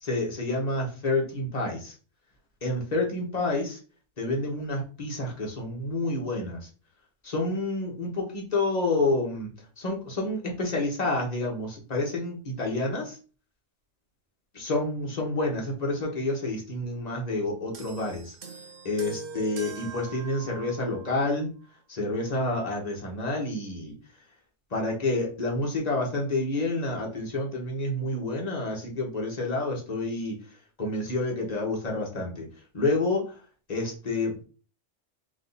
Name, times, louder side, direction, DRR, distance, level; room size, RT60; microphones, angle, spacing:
voice 1, 0.0-1.9 2.6-3.8 4.2-6.7 7.2-9.5 9.8-13.2 14.5-18.3 18.8-21.5 21.9-24.0 24.7-30.3 30.8-32.5 32.7-33.3 33.7-34.4, left 2 dB, 35° left, -1 dB, 1.3 m, -29 dB
sound 1, 17.7-21.3 22.2-22.4, right 5 dB, 55° right, 0.8 m, -43 dB
3.9 x 2.7 x 3.9 m, 0.37 s
omnidirectional pair, 1.2 m